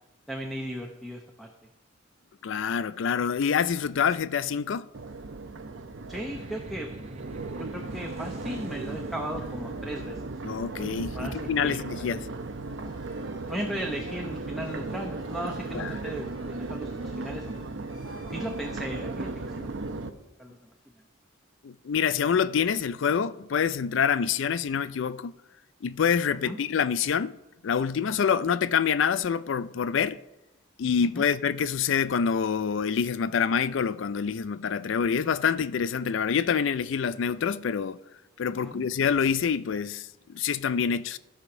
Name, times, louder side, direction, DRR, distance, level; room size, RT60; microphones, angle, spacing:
voice 1, 0.3-1.5 6.1-6.9 7.6-10.2 11.1-12.1 13.5-17.6 18.3-19.9 20.4-20.7 26.4-26.6 31.1-31.3 38.5-38.8, equal, ahead, 0.8 m, -37 dB
voice 2, 2.4-4.9 10.4-12.3 15.7-15.9 21.6-25.3 25.8-27.3 27.6-30.2 30.8-38.0 38.4-41.2, left 7 dB, 65° left, 0.4 m, -26 dB
Crowd, 4.9-20.1, right 3 dB, 65° right, 0.7 m, -36 dB
sound 1, 6.2-12.8, right 2 dB, 35° right, 0.7 m, -49 dB
sound 2, 12.7-20.2, left 1 dB, 25° left, 2.5 m, -57 dB
14.5 x 5.0 x 6.0 m
head